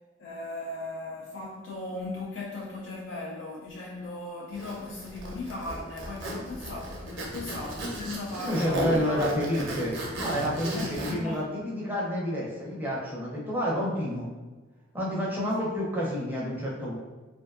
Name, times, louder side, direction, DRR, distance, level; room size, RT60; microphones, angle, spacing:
voice 1, 0.2-9.2 10.7-11.4, left 2 dB, 70° left, -3 dB, 0.4 m, -37 dB
Zipper (clothing), 4.5-11.1, right 1 dB, 85° right, 0.5 m, -35 dB
voice 2, 8.3-14.3 14.9-17.0, equal, 10° right, -5 dB, 0.5 m, -29 dB
2.5 x 2.2 x 2.3 m, 1.2 s
head